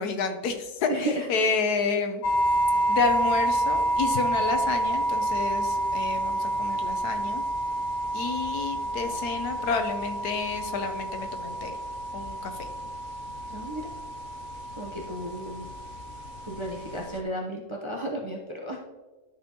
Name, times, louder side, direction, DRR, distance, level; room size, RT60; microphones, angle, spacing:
voice 1, 0.0-2.2 2.9-7.4 8.1-11.8 12.1-12.7, left 5 dB, 85° left, 7 dB, 1.3 m, -30 dB
voice 2, 0.9-1.5 13.5-13.9 14.8-15.7 16.4-18.8, right 1 dB, 30° right, -2 dB, 0.6 m, -33 dB
sound 1, 2.2-17.2, right 1 dB, 65° left, 1.2 m, -29 dB
12.5 x 4.3 x 2.9 m, 1.3 s
omnidirectional pair, 1.6 m